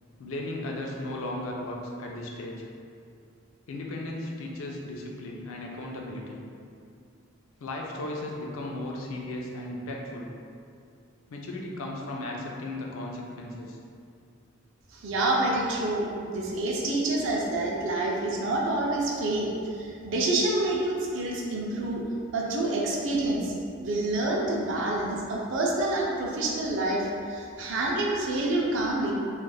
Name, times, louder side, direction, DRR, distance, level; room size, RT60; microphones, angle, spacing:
voice 1, 0.2-2.6 3.7-6.4 7.6-10.3 11.3-13.8, left 1 dB, 75° left, -1 dB, 0.4 m, -36 dB
voice 2, 14.9-22.0 22.3-29.1, right 2 dB, 65° right, -2 dB, 0.5 m, -27 dB
3.3 x 2.4 x 2.2 m, 2.4 s
head